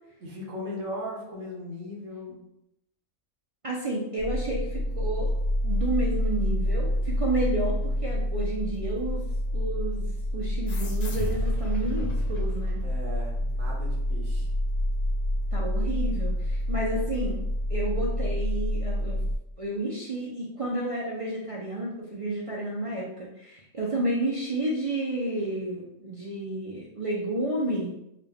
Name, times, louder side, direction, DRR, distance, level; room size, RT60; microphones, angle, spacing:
voice 1, 0.2-2.4 7.8-7.9 12.8-14.5, left 1 dB, 90° right, -3 dB, 1.4 m, -38 dB
voice 2, 3.6-5.3 5.6-9.2 9.5-10.1 10.3-12.8 15.5-17.4 17.7-19.2 19.6-27.9, right 1 dB, 65° right, -4 dB, 0.3 m, -31 dB
sound 1, 4.2-19.4, equal, 40° left, 0.8 m, -28 dB
sound 2, 10.7-13.7, left 1 dB, 85° left, 0.3 m, -40 dB
3.8 x 2.2 x 3.4 m, 0.82 s
omnidirectional pair, 1.3 m